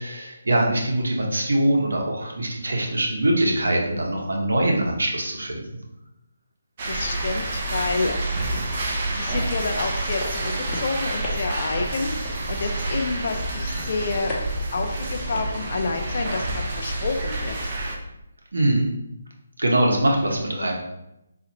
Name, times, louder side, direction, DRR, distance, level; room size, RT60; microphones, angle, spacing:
voice 1, 0.0-5.6 18.5-18.9 19.6-20.7, right 1 dB, 85° right, -1 dB, 0.9 m, -22 dB
sound 1, 6.8-18.0, right 2 dB, 40° right, 0.6 m, -28 dB
voice 2, 6.9-8.6 9.1-14.3 14.7-17.8 20.6-20.7, left 3 dB, 55° left, 4 dB, 0.5 m, -29 dB
sound 2, 9.7-15.9, left 1 dB, 10° left, 0.7 m, -38 dB
3.8 x 2.4 x 2.9 m, 0.87 s
hypercardioid pair, 160°, 0 cm